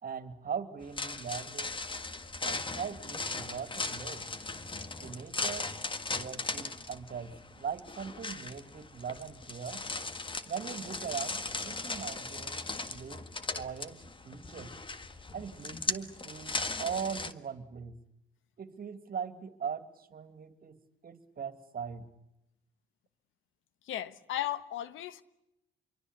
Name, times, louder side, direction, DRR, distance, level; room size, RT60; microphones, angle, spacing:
voice 1, 0.0-1.7 2.4-4.2 5.0-5.7 6.1-9.8 10.5-12.6 12.9-13.2 13.5-14.7 15.3-18.0 18.6-22.1, right 7 dB, 45° right, 2.6 m, -40 dB
sound 1, 0.8-17.3, left 3 dB, 25° left, 1.7 m, -38 dB
voice 2, 23.8-25.2, left 12 dB, 85° left, 1.4 m, -35 dB
27.0 x 23.5 x 8.3 m
cardioid pair, 90°, 20 cm